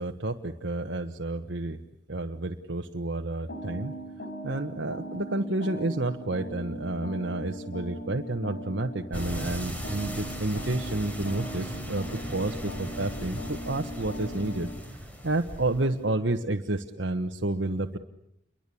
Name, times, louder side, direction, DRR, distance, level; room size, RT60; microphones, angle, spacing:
voice 1, 0.0-1.8 2.1-3.9 4.4-14.7 15.2-18.0, right 2 dB, 70° right, 4 dB, 1.3 m, -30 dB
sound 1, 3.5-14.8, equal, 60° left, 5.0 m, -39 dB
sound 2, 9.1-16.0, equal, 10° left, 4.8 m, -38 dB
29.5 x 23.5 x 8.5 m, 0.77 s
head